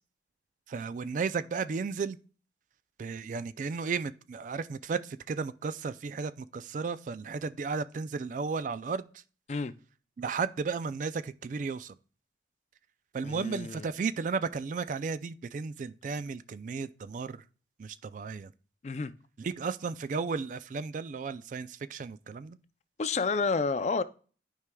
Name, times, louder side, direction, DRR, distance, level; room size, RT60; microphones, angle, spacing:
voice 1, 0.7-2.2 3.0-9.2 10.2-11.9 13.1-17.4 17.8-18.5 19.4-22.6, right 5 dB, 45° right, 0.3 m, -34 dB
voice 2, 13.2-13.9 18.8-19.1 23.0-24.0, left 4 dB, 40° left, 0.4 m, -30 dB
12.5 x 4.8 x 2.2 m
head